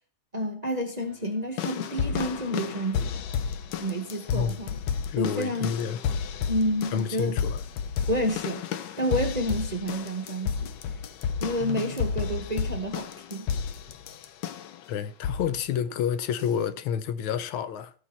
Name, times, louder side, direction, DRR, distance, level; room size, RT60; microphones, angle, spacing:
voice 1, 0.3-3.3 3.8-4.8 5.2-5.7 6.5-7.4 8.1-10.7 11.4-13.5, equal, 35° right, 0.7 m, -30 dB
Nice Drums, 1.6-14.8 15.2-15.6 16.4-16.5, left 7 dB, 70° left, 1.3 m, -32 dB
voice 2, 5.1-6.0 6.9-7.6 14.9-17.9, left 8 dB, 85° left, 1.6 m, -29 dB
15.5 x 6.6 x 4.2 m
omnidirectional pair, 2.2 m